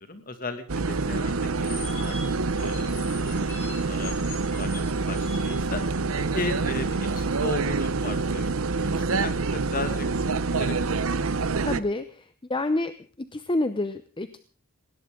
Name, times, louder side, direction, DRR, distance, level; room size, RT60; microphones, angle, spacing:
voice 1, 0.1-2.2 2.5-4.1 4.6-4.8 5.1-5.8 6.3-8.6 8.8-10.1 10.3-11.2, left 3 dB, 40° left, 8 dB, 2.3 m, -36 dB
sound 1, 0.7-11.8, right 3 dB, 70° right, 0.8 m, -26 dB
sound 2, 1.6-6.2, left 3 dB, 60° left, 6.6 m, -42 dB
voice 2, 11.6-12.9 13.3-14.4, left 2 dB, 25° left, 11 dB, 0.7 m, -28 dB
20.0 x 17.5 x 3.8 m, 0.40 s
head